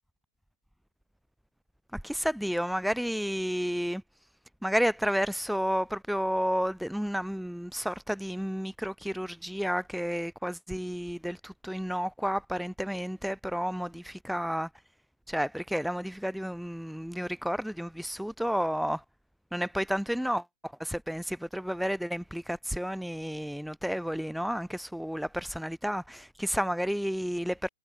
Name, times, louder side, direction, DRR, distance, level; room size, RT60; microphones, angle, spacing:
voice 1, 1.9-4.0 4.6-14.7 15.3-19.0 19.5-27.7, equal, ahead, 0.8 m, -31 dB
hypercardioid pair, 165°, 0 cm